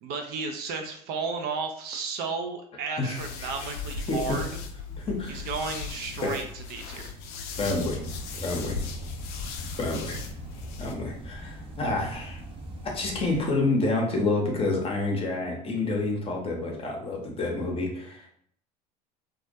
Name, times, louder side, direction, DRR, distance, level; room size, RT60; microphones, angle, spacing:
voice 1, 0.0-4.6 5.3-7.1, right 4 dB, 50° right, 5 dB, 0.4 m, -33 dB
voice 2, 3.0-3.5 4.1-4.4 4.9-5.5 6.2-6.4 7.6-8.0 8.4-8.8 9.8-10.2 10.8-12.4 12.8-18.3, left 2 dB, 25° left, 0 dB, 0.7 m, -28 dB
sound 1, 3.1-10.9, left 5 dB, 65° left, 0.4 m, -37 dB
sound 2, 7.5-13.4, right 1 dB, 25° right, 0.7 m, -41 dB
2.3 x 2.1 x 2.6 m, 0.64 s
hypercardioid pair, 70°, 21 cm